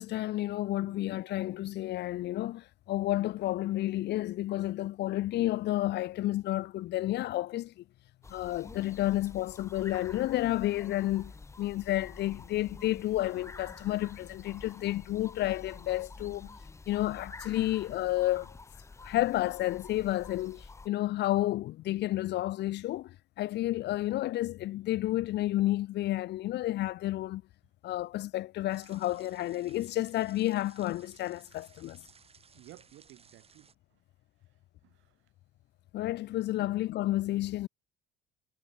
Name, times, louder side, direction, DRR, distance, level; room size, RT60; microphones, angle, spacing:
voice 1, 0.0-7.8 8.3-11.3 11.6-16.5 16.9-18.5 19.0-27.4 27.8-32.0 35.9-37.7, left 15 dB, 55° left, 0.5 m, -31 dB
voice 2, 0.8-1.2 32.5-33.7 34.8-35.1 36.6-36.7, right 17 dB, 70° right, 2.3 m, -55 dB
sound 1, 8.2-20.9, left 3 dB, 15° left, 0.8 m, -49 dB
sound 2, 28.7-33.7, right 6 dB, 30° right, 3.0 m, -60 dB
cardioid pair, 120°, 21 cm